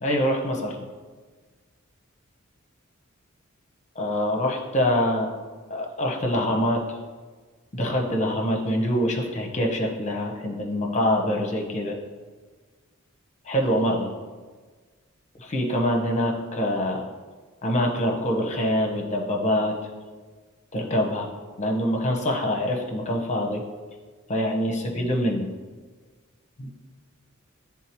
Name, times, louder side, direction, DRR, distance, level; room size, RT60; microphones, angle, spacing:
voice 1, 0.0-0.8 4.0-5.3 5.7-6.8 7.7-12.0 13.5-14.1 15.4-17.0 17.6-19.7 20.7-21.3 21.6-23.6 24.3-25.5 26.6-26.7, equal, 35° left, 1 dB, 0.9 m, -25 dB
10.0 x 3.6 x 3.0 m, 1.4 s
head